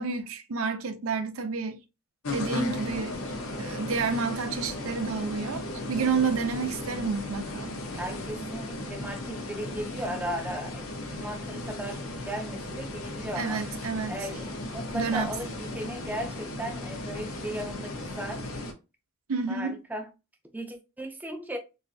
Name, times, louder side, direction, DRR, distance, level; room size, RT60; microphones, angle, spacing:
voice 1, 0.0-1.8 2.3-3.1 3.6-7.7 13.4-14.1 14.9-15.3 19.3-19.8, right 5 dB, 80° right, 0.5 m, -30 dB
sound 1, 2.2-18.7, left 1 dB, 85° left, 0.8 m, -36 dB
voice 2, 7.9-13.7 14.1-18.4 19.5-20.1 20.5-21.6, right 1 dB, 10° right, 0.5 m, -36 dB
4.0 x 2.5 x 2.6 m
head